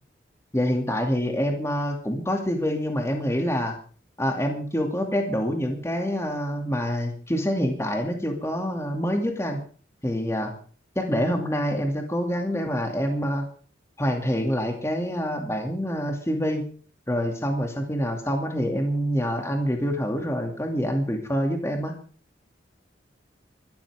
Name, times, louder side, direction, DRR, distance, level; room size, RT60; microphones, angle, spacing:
voice 1, 0.5-3.8 4.2-9.6 10.0-10.5 11.0-13.5 14.0-16.6 17.1-21.9, equal, 15° left, 4 dB, 2.4 m, -26 dB
24.5 x 13.0 x 3.6 m, 0.42 s
head